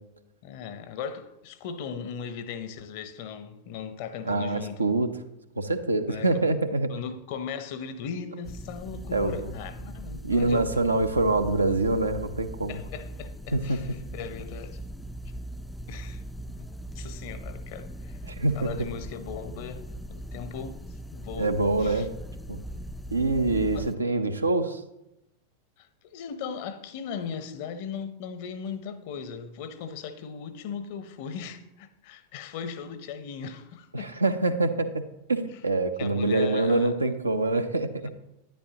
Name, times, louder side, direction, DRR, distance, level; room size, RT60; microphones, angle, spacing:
voice 1, 0.4-4.9 6.1-6.3 6.9-10.7 12.7-14.8 15.9-16.2 16.6-16.7 16.9-18.2 18.5-19.8 20.1-20.8 21.1-21.5 21.8-22.1 23.7-23.9 25.8-34.1 36.0-37.0 38.0-38.1, left 6 dB, 50° left, 0.8 m, -38 dB
voice 2, 4.2-5.1 5.6-6.9 9.1-9.5 10.2-12.8 13.5-13.8 18.3-18.7 21.4-22.1 22.5-22.6 23.1-24.8 33.9-35.0 35.3-38.1, right 2 dB, 80° right, 0.7 m, -25 dB
sound 1, 8.4-23.9, right 1 dB, 5° left, 0.4 m, -40 dB
10.5 x 9.8 x 2.9 m
figure-of-eight pair, 90°, 0 cm